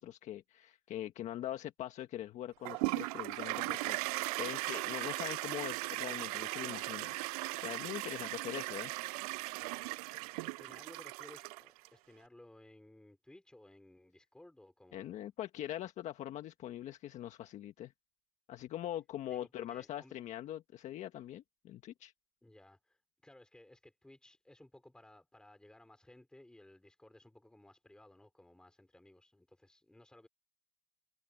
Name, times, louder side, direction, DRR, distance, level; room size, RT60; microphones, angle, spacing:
voice 1, 0.0-7.1 7.6-8.9 14.9-17.9 18.5-22.1, left 12 dB, 40° left, 1.5 m, -43 dB
Toilet flush, 2.7-11.9, right 24 dB, 75° right, 0.4 m, -38 dB
voice 2, 10.4-15.2 19.3-20.2 22.4-30.3, left 1 dB, 5° left, 4.8 m, -59 dB
supercardioid pair, 140°, 19 cm